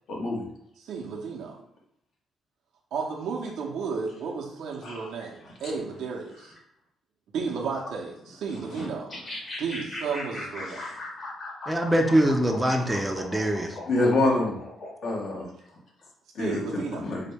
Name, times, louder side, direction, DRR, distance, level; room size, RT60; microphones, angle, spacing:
voice 1, 0.1-0.4 4.8-5.1 8.7-8.9 13.9-14.5 15.0-15.5 16.3-16.6 17.0-17.2, left 2 dB, 60° left, -1 dB, 1.1 m, -26 dB
voice 2, 0.8-1.6 2.9-6.5 7.3-9.1 9.6-10.8 16.4-17.1, right 5 dB, 75° right, -2 dB, 0.6 m, -33 dB
sound 1, 9.1-15.4, left 2 dB, 45° left, 1.3 m, -38 dB
voice 3, 11.7-13.7, right 1 dB, 10° right, 2 dB, 0.5 m, -23 dB
3.9 x 2.1 x 3.4 m, 0.75 s
cardioid pair, 90°, 0 cm